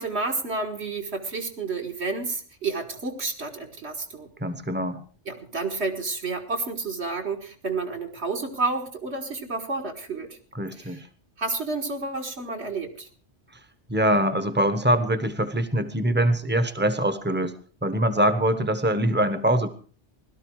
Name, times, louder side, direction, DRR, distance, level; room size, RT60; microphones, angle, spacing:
voice 1, 0.0-4.3 5.3-10.4 10.7-11.0 11.4-13.1, right 3 dB, 65° right, 2 dB, 2.2 m, -30 dB
voice 2, 4.4-5.0 10.5-11.0 13.9-17.5 17.8-19.7, right 1 dB, 10° right, 11 dB, 1.0 m, -23 dB
17.0 x 13.0 x 4.8 m, 0.41 s
omnidirectional pair, 1.2 m